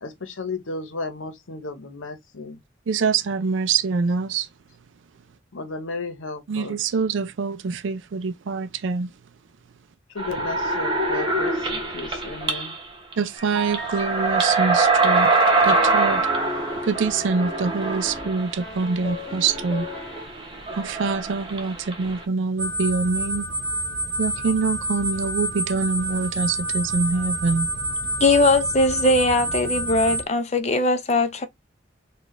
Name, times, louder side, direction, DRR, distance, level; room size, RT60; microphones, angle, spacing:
voice 1, 0.0-2.6 5.5-6.9 10.1-12.8, left 3 dB, 90° left, 0.9 m, -34 dB
voice 2, 2.9-4.5 6.5-9.1 13.2-15.3 15.6-16.2 16.8-19.9 20.8-23.5 24.2-27.7, right 4 dB, 75° right, 0.4 m, -25 dB
sound 1, 10.2-12.8 13.1-13.2 13.6-22.2, right 3 dB, 25° right, 0.9 m, -24 dB
sound 2, 13.4-14.2 15.6-18.3 18.6-20.3, right 1 dB, 15° left, 1.5 m, -36 dB
sound 3, 22.6-30.2, right 1 dB, 50° right, 1.0 m, -28 dB
voice 3, 28.2-31.5, left 2 dB, 35° left, 0.6 m, -20 dB
3.9 x 2.4 x 3.1 m
head